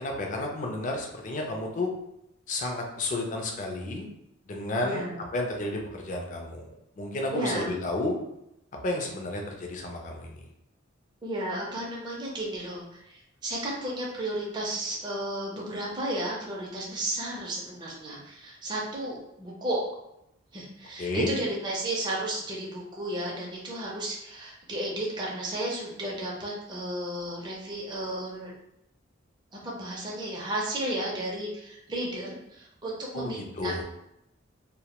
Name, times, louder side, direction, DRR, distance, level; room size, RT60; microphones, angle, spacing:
voice 1, 0.0-1.9 2.5-4.1 4.5-5.1 5.3-8.1 8.8-10.4 21.0-21.3 33.1-33.8, left 2 dB, 40° left, 1 dB, 0.4 m, -31 dB
voice 2, 4.8-5.2 7.3-7.7 11.2-19.8 20.5-28.5 29.5-33.7, right 1 dB, 20° right, -3 dB, 0.4 m, -33 dB
2.1 x 2.0 x 2.8 m, 0.82 s
head